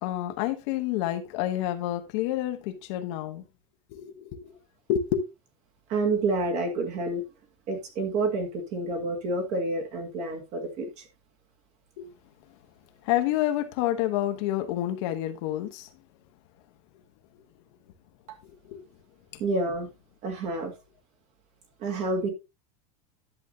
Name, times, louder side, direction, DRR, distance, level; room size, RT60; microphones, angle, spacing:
voice 1, 0.0-3.4 3.9-4.6 4.9-5.2 12.0-12.1 13.0-15.9 18.4-18.8, left 12 dB, 50° left, 1.1 m, -29 dB
voice 2, 5.9-7.2 7.7-11.0 19.4-19.9 20.2-20.7 21.8-22.3, right 2 dB, 35° right, 2.0 m, -28 dB
11.0 x 7.2 x 2.7 m
supercardioid pair, 170°, 19 cm